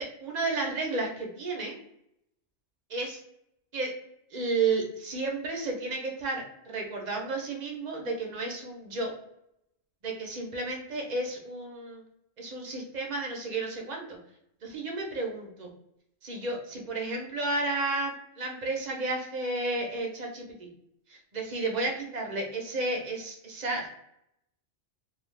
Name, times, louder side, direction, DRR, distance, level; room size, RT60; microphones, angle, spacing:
voice 1, 0.0-1.7 2.9-3.2 3.7-3.9 4.3-9.1 10.0-12.0 12.4-14.2 14.6-15.7 16.2-20.7 21.1-23.9, right 3 dB, 50° right, 0 dB, 0.6 m, -32 dB
2.5 x 2.3 x 3.1 m, 0.77 s
omnidirectional pair, 1.2 m